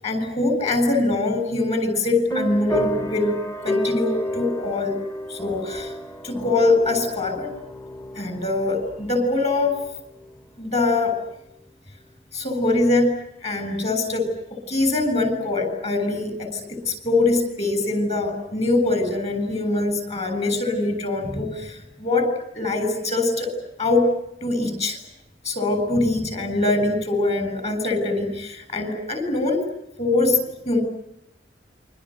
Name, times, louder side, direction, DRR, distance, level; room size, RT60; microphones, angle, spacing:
voice 1, 0.0-5.0 5.3-5.9 6.2-7.5 8.1-9.8 10.6-11.2 12.3-13.1 13.4-23.5 23.8-24.1 24.4-25.0 25.4-29.6 30.0-30.8, left 2 dB, 40° left, 8 dB, 8.0 m, -23 dB
sound 1, 2.3-10.4, left 1 dB, 15° left, 1.2 m, -31 dB
28.0 x 25.0 x 8.1 m, 0.81 s
head